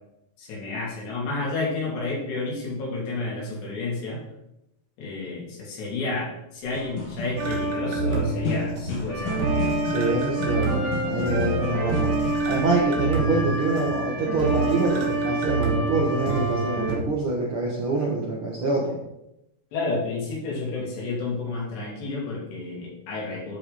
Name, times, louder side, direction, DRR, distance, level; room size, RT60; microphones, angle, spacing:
voice 1, 0.4-4.2 5.0-9.8 19.7-23.6, left 3 dB, 85° left, -4 dB, 5.1 m, -31 dB
sound 1, 6.6-12.8, left 3 dB, 65° left, 3.6 m, -34 dB
sound 2, 7.4-17.0, right 2 dB, 55° right, 2.4 m, -26 dB
voice 2, 9.9-12.1 12.4-19.0, right 3 dB, 80° right, -3 dB, 1.2 m, -26 dB
12.5 x 5.3 x 4.2 m, 0.86 s
omnidirectional pair, 4.7 m